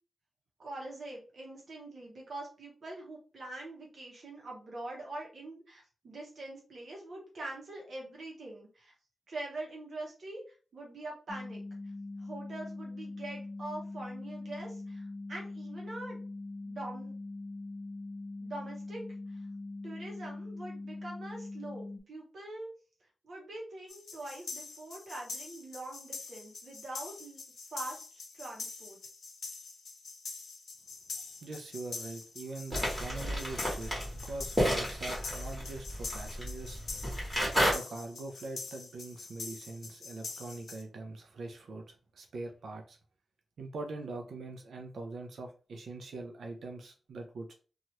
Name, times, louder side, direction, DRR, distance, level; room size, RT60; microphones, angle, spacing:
voice 1, 0.6-8.9 9.3-11.6 12.2-16.2 16.6-17.1 18.4-19.0 19.3-19.5 19.8-22.7 23.2-27.4 27.7-29.0, right 2 dB, 50° right, -2 dB, 0.8 m, -44 dB
sound 1, 11.3-22.0, left 2 dB, 5° left, 0.4 m, -42 dB
sound 2, 23.9-40.8, left 4 dB, 70° left, 0.6 m, -45 dB
voice 2, 31.4-33.9 34.2-36.8 37.7-43.0 43.6-47.5, right 3 dB, 70° right, 3 dB, 0.4 m, -43 dB
sound 3, 32.7-37.7, equal, 10° right, 1.4 m, -32 dB
2.8 x 2.3 x 3.0 m, 0.36 s
wide cardioid pair, 165°, 0 cm